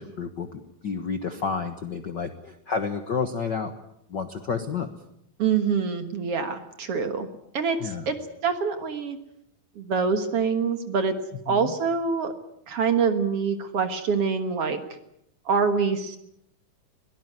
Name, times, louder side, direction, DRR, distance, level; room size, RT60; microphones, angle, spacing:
voice 1, 0.0-3.7 4.1-4.9 7.8-8.1 11.5-11.7, left 5 dB, 55° left, 7 dB, 1.2 m, -30 dB
voice 2, 5.4-7.3 7.5-8.2 8.4-9.2 9.8-11.1 11.5-12.3 12.7-14.8 15.5-16.2, right 5 dB, 55° right, 8 dB, 2.1 m, -25 dB
22.0 x 18.5 x 9.4 m, 0.78 s
omnidirectional pair, 3.8 m